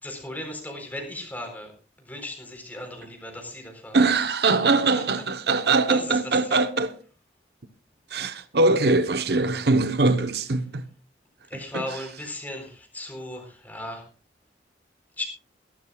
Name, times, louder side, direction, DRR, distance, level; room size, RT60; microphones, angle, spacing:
voice 1, 0.0-1.7 2.0-4.1 5.9-6.6 11.5-14.1 15.2-15.3, left 1 dB, 10° left, 4.1 m, -36 dB
voice 2, 3.9-6.9 8.1-10.9 11.7-11.8, right 3 dB, 65° right, 1.0 m, -22 dB
21.5 x 12.5 x 2.4 m
head